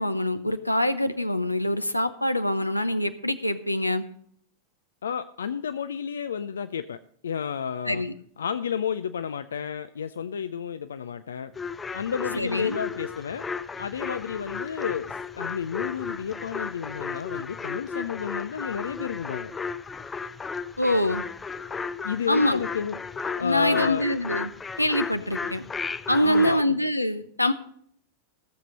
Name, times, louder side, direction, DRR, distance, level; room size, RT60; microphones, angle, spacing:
voice 1, 0.0-4.0 7.9-8.1 12.4-12.8 20.8-21.2 22.3-22.6 23.4-24.5 24.8-25.6 26.1-27.5, left 1 dB, 85° left, 11 dB, 0.8 m, -24 dB
voice 2, 5.0-8.0 8.4-11.5 11.9-13.4 13.8-19.5 22.0-23.0 23.4-24.1 26.2-26.7, left 7 dB, 65° left, 11 dB, 0.4 m, -31 dB
sound 1, 11.6-26.6, left 5 dB, 15° left, 0.6 m, -34 dB
15.5 x 7.5 x 5.2 m, 0.63 s
figure-of-eight pair, 90°, 0 cm